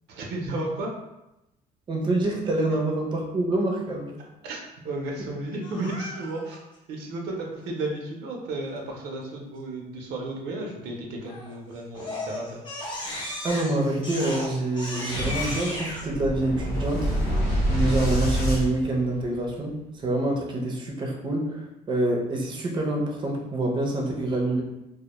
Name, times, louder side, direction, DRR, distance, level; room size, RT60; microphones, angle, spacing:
voice 1, 0.1-0.9 4.4-4.6 4.8-6.6 6.9-12.6, right 2 dB, 80° right, 0 dB, 0.5 m, -33 dB
voice 2, 1.9-4.2 13.4-17.1 17.7-24.6, right 2 dB, 25° right, 0 dB, 0.5 m, -26 dB
Crying sobbing, 5.6-6.6 11.2-11.6 11.9-16.0, left 1 dB, 30° left, 0.6 m, -35 dB
Boom, 15.1-19.5, equal, 90° left, 0.9 m, -26 dB
2.1 x 2.1 x 2.9 m, 0.93 s
cardioid pair, 110°, 17 cm